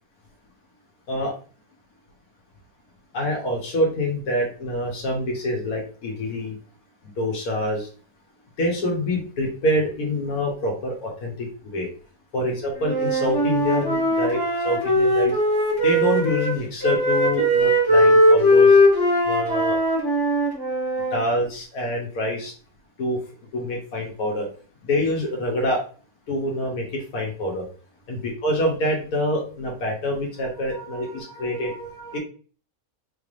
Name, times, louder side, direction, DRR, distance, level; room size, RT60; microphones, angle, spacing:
voice 1, 3.1-6.6 7.2-7.9 8.6-11.9 12.3-14.4 14.6-15.4 15.8-18.8 19.2-19.8 21.1-22.5 23.0-23.2 23.5-24.5 24.9-25.8 26.3-27.7 28.1-32.2, left 1 dB, 85° left, 0 dB, 1.4 m, -26 dB
Wind instrument woodwind instrument, 12.8-16.5 16.8-21.2, equal, 20° left, 0.8 m, -19 dB
4.3 x 3.3 x 2.5 m, 0.39 s
omnidirectional pair, 1.5 m